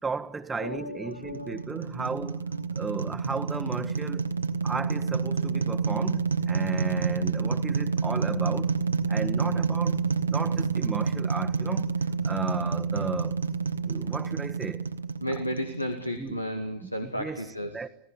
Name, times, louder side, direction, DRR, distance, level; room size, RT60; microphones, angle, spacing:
voice 1, 0.0-2.5 2.7-4.3 4.6-8.7 9.1-10.0 10.3-11.9 12.2-13.4 13.8-14.9 16.2-16.4 16.8-17.4 17.7-17.9, right 4 dB, 15° right, 1.5 m, -34 dB
voice 2, 0.6-2.7 9.4-9.6 15.2-17.8, equal, 85° left, 2.2 m, -34 dB
sound 1, 1.1-16.3, right 5 dB, 75° right, 1.6 m, -28 dB
26.5 x 18.0 x 9.9 m
figure-of-eight pair, 90°, 0 cm